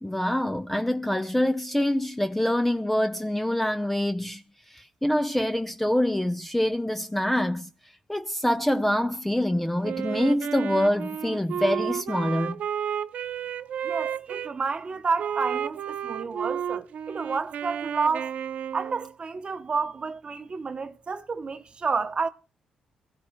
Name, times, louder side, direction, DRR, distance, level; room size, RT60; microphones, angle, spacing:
voice 1, 0.0-4.4 4.7-7.7 8.1-12.6, left 1 dB, 10° left, 0.6 m, -25 dB
Wind instrument woodwind instrument, 9.8-14.5 15.2-19.1, right 9 dB, 70° right, 0.6 m, -32 dB
voice 2, 13.8-18.3 18.7-22.3, right 5 dB, 45° right, 0.8 m, -30 dB
24.0 x 15.0 x 2.2 m
cardioid pair, 65°, 2 cm